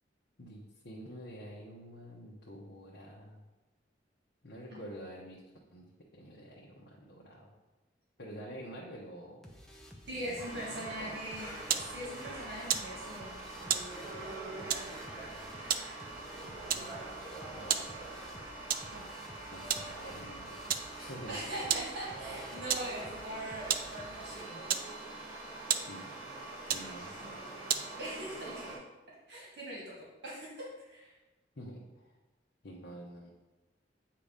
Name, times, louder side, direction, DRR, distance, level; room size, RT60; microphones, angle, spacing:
voice 1, 0.4-3.4 4.4-5.4 5.7-5.9 6.1-7.5 8.2-9.5 10.1-10.4 10.6-11.2 16.4-16.9 17.5-17.9 19.5-20.7 21.0-21.4 25.9-26.1 26.7-27.4 31.6-32.1 32.6-33.3, equal, 65° left, -4 dB, 0.9 m, -48 dB
sound 1, 9.4-24.4, left 1 dB, ahead, 0.7 m, -53 dB
voice 2, 10.1-11.6 11.9-13.9 18.9-19.0 21.3-24.7 28.0-28.8 29.3-30.0 30.2-31.2, right 1 dB, 65° right, -6 dB, 1.8 m, -41 dB
sound 2, 10.4-28.8, right 2 dB, 15° right, 1.7 m, -44 dB
sound 3, 11.3-28.2, right 9 dB, 50° right, 0.4 m, -38 dB
8.4 x 2.9 x 5.0 m, 1.1 s
head